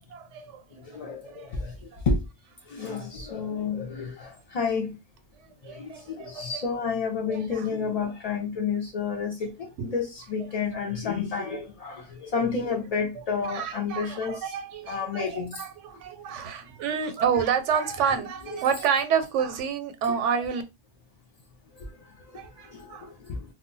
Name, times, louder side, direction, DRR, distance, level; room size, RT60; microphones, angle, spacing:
voice 1, 0.1-0.6 1.3-1.5 1.9-2.0 5.6-6.8 7.3-7.7 9.8-9.9 13.2-20.6 22.3-23.1, right 7 dB, 80° right, 0.9 m, -29 dB
voice 2, 0.7-1.7 2.1-2.2 2.7-5.0 5.7-14.5 14.9-15.6 21.8-21.9 22.3-23.4, left 5 dB, 60° left, 0.4 m, -30 dB
2.1 x 2.1 x 3.8 m
omnidirectional pair, 1.2 m